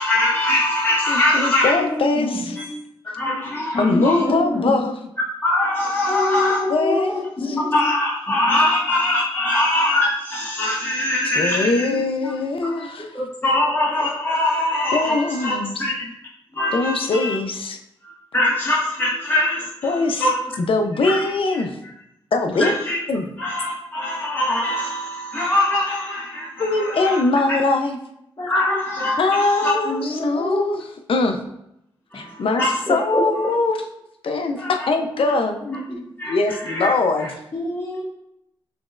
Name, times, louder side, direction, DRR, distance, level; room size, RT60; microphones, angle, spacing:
voice 1, 0.0-1.7 2.5-2.6 3.2-4.2 5.4-6.6 7.7-12.3 12.6-12.9 13.1-16.0 16.5-17.3 18.0-20.4 21.0-21.1 22.6-23.0 23.4-27.2 28.5-29.7 32.1-32.7 34.6-34.7 36.2-36.9, left 1 dB, 20° left, -8 dB, 1.6 m, -22 dB
voice 2, 1.1-2.6 3.8-5.0 6.7-7.6 11.2-13.1 14.9-15.9 16.7-17.8 19.8-21.8 22.3-22.7 23.1-23.3 26.6-28.0 29.2-31.4 32.1-32.6 32.9-33.9 34.2-35.6 36.3-37.3, left 3 dB, 65° left, 5 dB, 0.6 m, -22 dB
voice 3, 1.8-2.7 3.7-4.7 6.1-7.8 28.4-28.8 29.8-30.7 35.2-35.3 35.6-36.0 37.5-38.0, left 1 dB, 45° left, -8 dB, 1.6 m, -26 dB
6.0 x 3.1 x 2.5 m, 0.79 s
cardioid pair, 50°, 10 cm